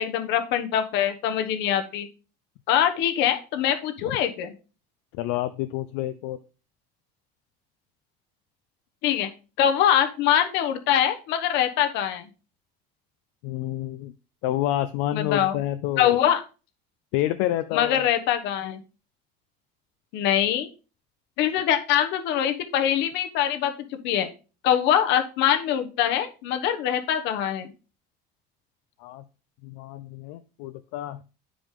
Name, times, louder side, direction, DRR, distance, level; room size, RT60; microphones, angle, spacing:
voice 1, 0.0-2.1 2.7-4.5 9.0-9.3 9.6-12.2 15.1-15.6 16.0-16.4 17.7-18.8 20.1-20.7 21.4-24.3 24.6-27.7, left 10 dB, 60° left, 7 dB, 1.0 m, -23 dB
voice 2, 5.2-6.4 13.4-14.1 14.4-16.2 17.1-18.1 29.0-29.2 29.6-31.2, left 14 dB, 80° left, 11 dB, 0.5 m, -28 dB
8.9 x 5.0 x 3.6 m, 0.34 s
cardioid pair, 160°, 20 cm